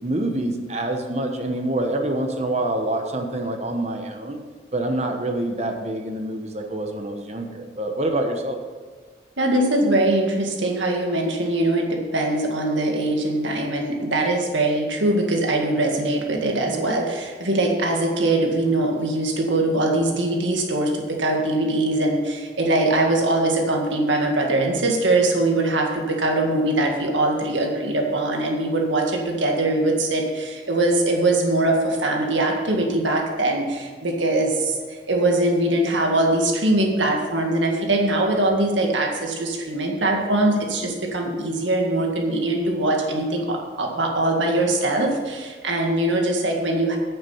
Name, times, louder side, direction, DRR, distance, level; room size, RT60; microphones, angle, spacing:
voice 1, 0.0-4.4 4.7-8.6, right 1 dB, 35° right, 4 dB, 1.1 m, -26 dB
voice 2, 9.4-47.0, right 2 dB, 80° right, 1 dB, 1.9 m, -22 dB
9.7 x 6.8 x 7.2 m, 1.5 s
head